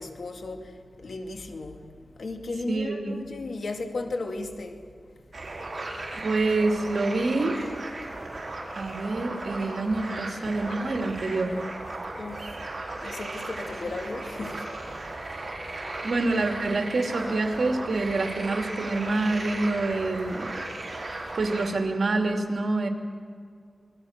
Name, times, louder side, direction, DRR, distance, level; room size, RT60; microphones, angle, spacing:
voice 1, 0.0-1.9 2.2-4.8 10.7-10.8 12.2-12.6 13.0-14.7 21.2-21.3, left 3 dB, 80° left, 2.4 m, -35 dB
voice 2, 2.7-3.2 6.1-7.5 8.7-11.5 16.0-20.5 21.3-22.9, right 2 dB, 75° right, 2.7 m, -26 dB
sound 1, 5.3-21.7, right 2 dB, 50° right, 5.2 m, -36 dB
27.5 x 21.0 x 6.6 m
wide cardioid pair, 75°, 0 cm